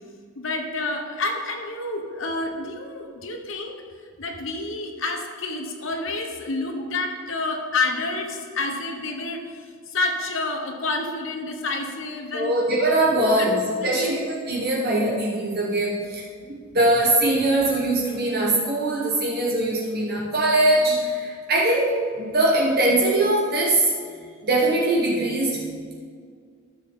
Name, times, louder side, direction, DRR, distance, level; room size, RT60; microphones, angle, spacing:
voice 1, 0.4-3.8 4.2-12.5 13.1-14.1, left 3 dB, 65° left, 3 dB, 1.1 m, -29 dB
voice 2, 12.3-14.2 14.5-16.2 16.7-23.9 24.4-25.7, right 1 dB, 45° right, -3 dB, 1.1 m, -21 dB
12.5 x 7.0 x 3.8 m, 2.1 s
head